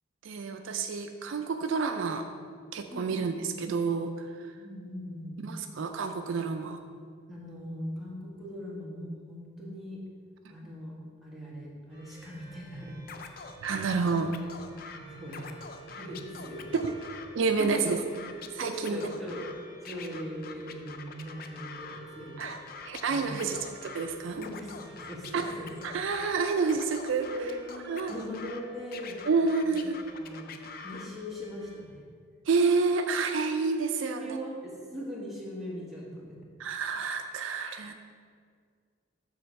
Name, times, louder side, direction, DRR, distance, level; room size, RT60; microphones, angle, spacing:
voice 1, 0.2-2.3 2.7-4.5 5.4-6.8 10.4-10.5 13.6-14.4 16.8-16.9 17.3-18.0 18.5-19.0 22.4-24.4 25.3-25.5 25.8-27.5 27.8-28.1 29.3-30.0 32.5-34.4 36.6-37.9, right 4 dB, 70° right, 6 dB, 0.4 m, -29 dB
voice 2, 4.5-5.4 7.3-10.0 10.5-13.0 13.6-13.8 14.9-15.5 15.9-16.7 17.6-17.7 18.6-19.5 19.8-22.4 23.1-23.4 24.4-25.6 27.3-29.2 29.6-29.8 30.1-30.5 30.8-32.0 34.0-36.4, equal, ahead, -6 dB, 1.4 m, -40 dB
sound 1, 11.9-31.8, right 2 dB, 30° right, 1.8 m, -53 dB
Scratching (performance technique), 13.1-15.0 15.3-17.3 17.5-19.5 19.9-22.0 22.4-24.1 24.4-26.3 26.7-28.6 28.9-31.1, left 6 dB, 45° left, 0.4 m, -45 dB
7.6 x 3.4 x 6.3 m, 2.1 s
head